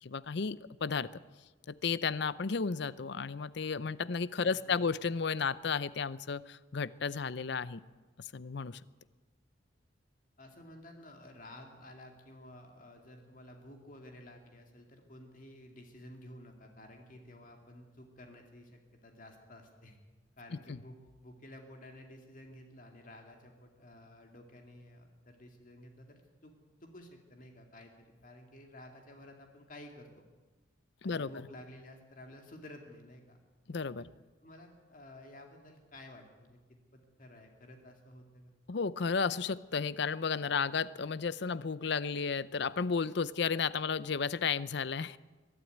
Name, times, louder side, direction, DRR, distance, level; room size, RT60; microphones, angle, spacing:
voice 1, 0.0-1.1 1.7-7.8 8.2-8.8 20.7-20.8 31.0-31.3 33.7-34.0 38.7-45.2, left 5 dB, 60° left, 17 dB, 0.6 m, -33 dB
voice 2, 4.4-5.0 10.4-20.0 20.4-26.5 26.8-30.3 31.0-33.4 34.0-34.1 34.4-38.5, left 1 dB, 45° left, 3 dB, 2.3 m, -53 dB
23.0 x 12.5 x 9.3 m, 1.3 s
head